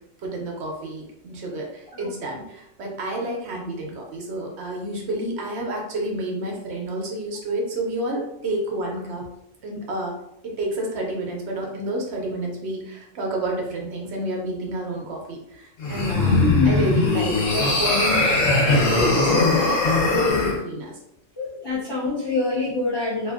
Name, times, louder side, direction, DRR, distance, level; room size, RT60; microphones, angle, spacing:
voice 1, 0.2-9.3 9.6-19.6 20.3-21.0, right 1 dB, 65° right, 0 dB, 0.8 m, -30 dB
sound 1, 15.8-20.6, left 2 dB, 80° left, 1.1 m, -20 dB
voice 2, 16.4-16.8 21.4-23.3, left 3 dB, 45° left, -7 dB, 0.3 m, -25 dB
2.6 x 2.4 x 2.3 m, 0.81 s
omnidirectional pair, 1.4 m